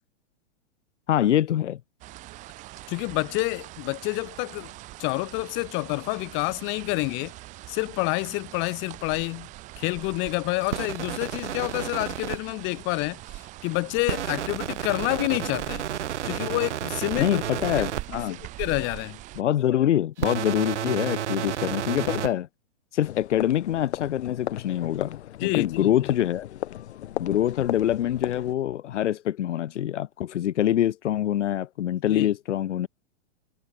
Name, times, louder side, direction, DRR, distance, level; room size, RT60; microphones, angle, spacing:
voice 1, 1.1-1.8 17.2-18.4 19.4-22.5 22.9-26.4 27.2-32.9, left 11 dB, 85° left, 0.7 m, -25 dB
sound 1, 2.0-19.4, right 18 dB, 20° right, 0.5 m, -43 dB
voice 2, 2.9-4.7 5.0-7.3 7.7-9.5 9.8-15.8 16.2-17.4 17.8-17.9 18.4-19.2 25.4-25.9 32.1-32.3, left 28 dB, 35° left, 1.0 m, -28 dB
sound 2, 10.7-12.4 14.1-18.0 20.2-22.3, right 11 dB, 80° right, 1.4 m, -31 dB
sound 3, 23.0-28.5, left 12 dB, 70° left, 1.8 m, -36 dB
hypercardioid pair, 125°, 35 cm